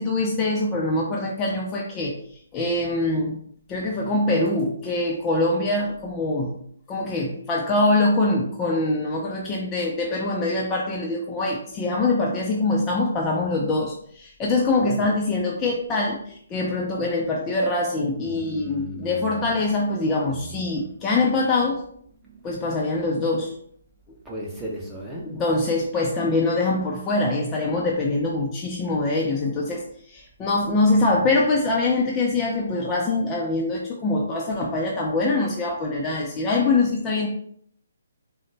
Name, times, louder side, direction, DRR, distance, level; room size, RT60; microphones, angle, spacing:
voice 1, 0.0-2.2 2.5-3.4 3.7-6.5 6.9-21.8 22.4-23.5 25.2-37.3, left 2 dB, 20° left, -2 dB, 0.4 m, -24 dB
voice 2, 18.2-19.4 20.3-20.8 22.3-22.4 24.2-25.3, right 2 dB, 5° right, -4 dB, 0.7 m, -36 dB
3.8 x 2.0 x 3.2 m, 0.64 s
hypercardioid pair, 145°, 0 cm